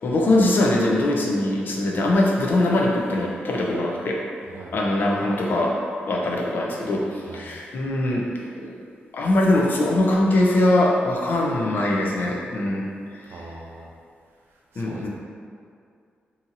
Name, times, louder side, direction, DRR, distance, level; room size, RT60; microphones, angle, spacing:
voice 1, 0.0-4.2 4.7-5.8 6.1-8.7 9.1-12.8 13.1-13.4 14.8-15.1, left 1 dB, 60° left, -2 dB, 0.5 m, -22 dB
voice 2, 4.4-4.7 7.1-7.5 13.2-13.9 14.5-15.1, right 3 dB, 85° right, -1 dB, 0.4 m, -42 dB
2.7 x 2.5 x 2.7 m, 2.3 s
cardioid pair, 80°, 4 cm